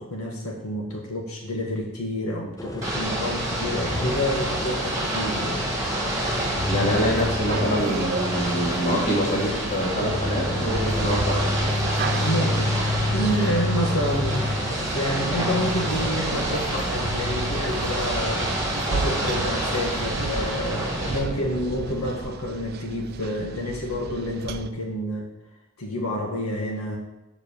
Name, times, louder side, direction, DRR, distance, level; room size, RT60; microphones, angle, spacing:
voice 1, 0.0-5.7 12.2-14.5 14.9-18.5 18.9-25.3 25.8-27.0, equal, 80° left, -1 dB, 1.6 m, -29 dB
sound 1, 2.6-22.3, left 2 dB, 15° left, 0.9 m, -31 dB
Ocean / Boat Water vehicle, 2.8-21.2, right 1 dB, 15° right, 1.8 m, -28 dB
sound 2, 6.6-24.7, right 5 dB, 45° right, 0.3 m, -34 dB
voice 2, 6.7-11.7, equal, 35° left, -3 dB, 2.1 m, -26 dB
7.4 x 5.0 x 6.9 m, 0.98 s
head